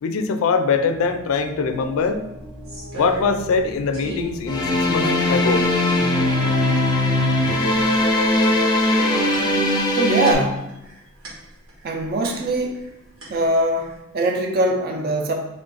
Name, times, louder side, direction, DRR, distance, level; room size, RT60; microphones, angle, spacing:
voice 1, 0.0-2.2 3.0-5.7 6.5-6.6 7.5-7.6, left 5 dB, 75° left, 8 dB, 0.4 m, -22 dB
sound 1, 0.7-7.6, equal, 75° right, 1.1 m, -37 dB
sound 2, 1.7-1.8 2.1-3.7 3.9-4.4 4.9-5.0 5.3-6.0 7.0-7.4 7.7-12.9 13.2-14.0, right 3 dB, 90° right, 1.3 m, -37 dB
sound 3, 4.5-10.3, left 1 dB, 20° left, 0.5 m, -19 dB
voice 2, 10.0-10.7 11.8-12.9 13.3-15.3, right 1 dB, 45° right, 3 dB, 0.5 m, -22 dB
3.5 x 2.5 x 3.8 m, 0.88 s
head